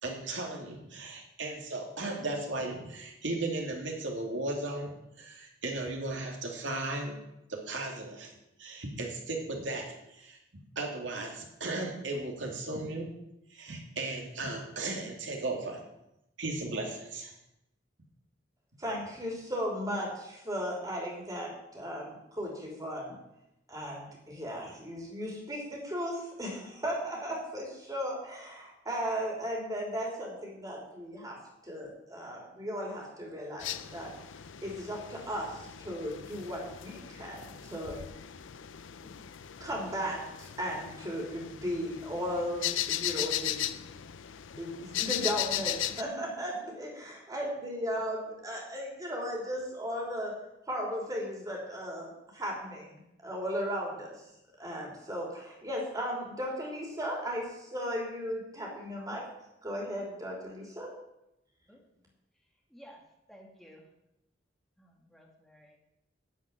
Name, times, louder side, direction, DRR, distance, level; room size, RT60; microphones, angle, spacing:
voice 1, 0.0-4.9 5.2-7.2 7.5-8.3 8.6-10.4 10.8-13.1 13.5-15.8 16.4-17.3, right 2 dB, 75° right, 1 dB, 2.6 m, -36 dB
voice 2, 18.8-23.1 23.7-31.4 31.6-34.1 34.6-38.0 39.6-43.6 44.6-50.3 50.7-54.1 54.6-59.2 59.6-60.9, equal, 20° right, -2 dB, 3.3 m, -36 dB
sound 1, 33.6-46.0, left 12 dB, 85° left, 0.6 m, -37 dB
voice 3, 62.7-63.0 63.3-63.9 64.8-65.8, equal, ahead, -1 dB, 2.2 m, -54 dB
11.5 x 5.7 x 9.0 m, 0.87 s
head